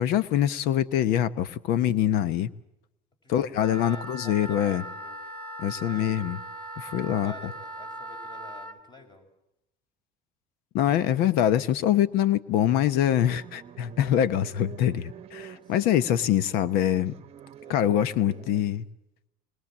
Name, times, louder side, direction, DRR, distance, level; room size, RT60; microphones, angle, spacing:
voice 1, 0.0-2.5 3.3-4.8 5.6-6.4 6.8-7.3 10.7-17.1 17.7-18.8, left 11 dB, 70° left, 16 dB, 1.0 m, -24 dB
voice 2, 3.2-5.2 5.8-6.2 7.2-9.3 15.5-16.1 17.5-18.8, left 3 dB, 30° left, 6 dB, 5.6 m, -49 dB
Wind instrument woodwind instrument, 3.5-8.8, right 1 dB, 5° left, 2.8 m, -39 dB
sound 1, 13.1-18.6, right 10 dB, 40° right, 1.0 m, -47 dB
22.5 x 21.0 x 7.4 m, 0.91 s
cardioid pair, 120°, 16 cm